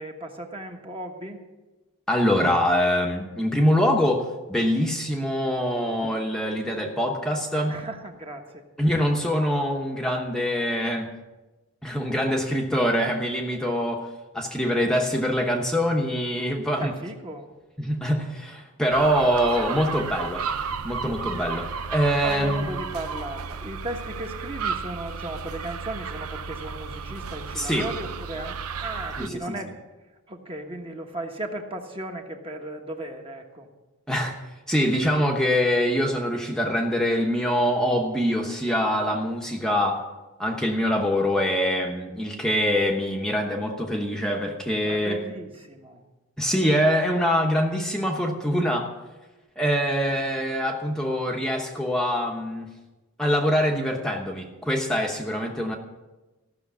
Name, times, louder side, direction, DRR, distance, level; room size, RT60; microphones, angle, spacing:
voice 1, 0.0-1.4 7.7-8.7 16.8-17.5 22.2-29.7 30.3-33.7 44.8-46.0, right 1 dB, 25° right, 3 dB, 1.3 m, -36 dB
voice 2, 2.1-7.8 8.8-11.1 11.8-14.1 14.3-16.9 17.8-20.5 20.8-22.7 27.5-27.9 29.2-29.6 34.1-34.3 34.7-40.0 40.4-45.2 46.4-48.9 49.6-52.7 53.2-55.8, equal, 5° left, 0 dB, 0.9 m, -24 dB
sound 1, 18.9-29.3, right 6 dB, 80° right, 0.7 m, -33 dB
15.5 x 6.5 x 8.3 m, 1.1 s
head